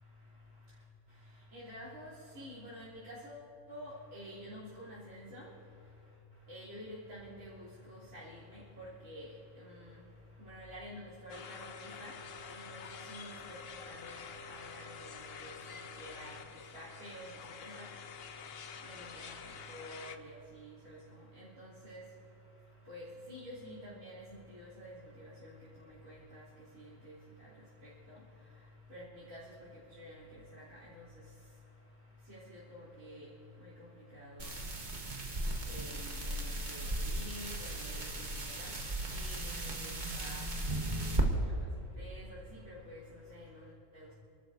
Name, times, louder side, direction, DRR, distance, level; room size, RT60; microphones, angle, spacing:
voice 1, 1.5-3.4 3.7-5.4 6.5-7.5 7.9-9.3 9.6-9.7 10.5-11.7 12.0-12.1 12.5-13.6 13.9-15.5 16.0-16.4 16.7-17.3 17.6-17.8 18.9-19.4 19.7-21.0 21.4-22.0 22.9-24.2 24.5-25.5 26.0-26.4 28.9-29.4 30.0-30.1 32.3-33.3 34.1-34.5 35.7-38.1 38.4-38.7 39.1-40.4 42.0-43.0 43.3-43.5 43.9-44.1, equal, 75° right, -10 dB, 3.7 m, -49 dB
sound 1, 11.3-20.2, left 6 dB, 55° left, 0.9 m, -48 dB
sound 2, 34.4-41.2, right 1 dB, 35° right, 1.5 m, -36 dB
29.5 x 12.5 x 2.7 m, 2.9 s
omnidirectional pair, 1.4 m